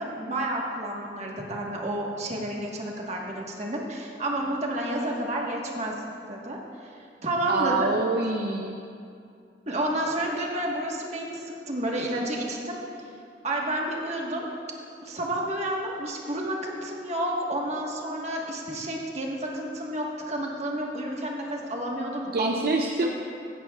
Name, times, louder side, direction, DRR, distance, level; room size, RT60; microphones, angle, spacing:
voice 1, 0.0-6.0 6.3-6.9 7.2-7.9 9.7-12.8 13.4-14.5 15.0-22.5 23.0-23.1, right 1 dB, 40° right, -1 dB, 1.4 m, -30 dB
voice 2, 7.5-8.8 22.3-23.1, right 3 dB, 60° right, 2 dB, 0.5 m, -26 dB
15.5 x 11.0 x 2.4 m, 2.5 s
head